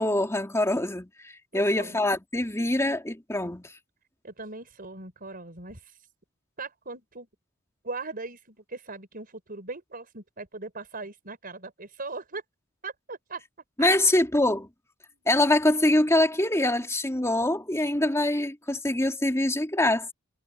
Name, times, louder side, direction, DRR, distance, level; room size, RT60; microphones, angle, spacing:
voice 1, 0.0-3.7 13.8-14.7 15.2-20.1, left 1 dB, 15° left, 3.1 m, -24 dB
voice 2, 1.5-2.0 4.2-6.0 6.6-7.3 7.8-12.4 12.8-13.4 13.8-13.9 15.1-15.2, right 3 dB, 45° right, 5.3 m, -39 dB
head